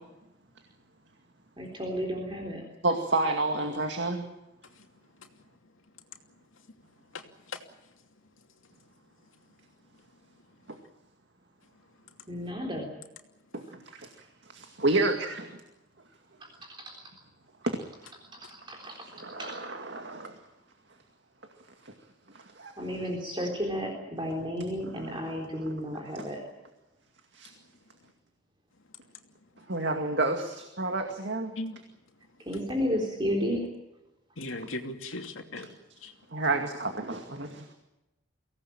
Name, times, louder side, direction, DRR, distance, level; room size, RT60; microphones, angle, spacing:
voice 1, 1.6-2.6 12.3-12.9 16.9-17.0 18.7-19.0 19.4-19.5 22.8-26.4 32.4-33.6, equal, 25° right, 0 dB, 3.8 m, -32 dB
voice 2, 2.8-4.2 10.7-10.8 13.5-14.1 14.5-15.6 17.7-17.8 19.1-20.4 21.8-21.9 22.3-22.7 25.0-26.1 27.3-27.5 29.7-31.6 36.3-37.8, right 2 dB, 60° right, 4 dB, 2.2 m, -30 dB
voice 3, 7.1-7.6 31.6-31.8 34.4-35.7 36.0-36.1, left 2 dB, 85° left, 4 dB, 2.8 m, -38 dB
24.0 x 17.5 x 8.9 m, 0.97 s
head